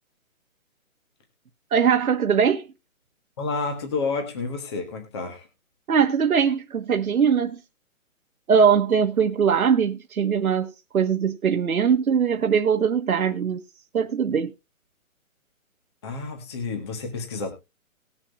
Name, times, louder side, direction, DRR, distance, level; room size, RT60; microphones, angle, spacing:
voice 1, 1.7-2.6 5.9-7.6 8.5-13.6 13.9-14.5, right 7 dB, 85° right, 1.3 m, -21 dB
voice 2, 3.4-5.5 16.0-17.5, left 4 dB, 20° left, 1.3 m, -30 dB
19.5 x 7.2 x 2.3 m
hypercardioid pair, 175°, 42 cm